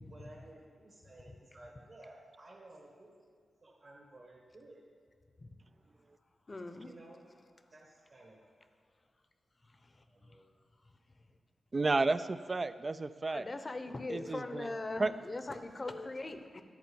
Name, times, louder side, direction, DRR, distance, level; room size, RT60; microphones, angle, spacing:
voice 1, 0.0-3.3 3.6-4.9 6.8-7.3 7.7-8.5 10.0-10.5, right 1 dB, 60° right, -3 dB, 1.7 m, -55 dB
voice 2, 6.5-6.9 9.8-9.9 13.3-16.6, left 2 dB, 40° left, 8 dB, 0.7 m, -40 dB
voice 3, 11.7-13.5 14.1-15.1, right 3 dB, 45° right, 12 dB, 0.3 m, -32 dB
10.5 x 4.2 x 7.0 m, 2.1 s
cardioid pair, 45°, 0 cm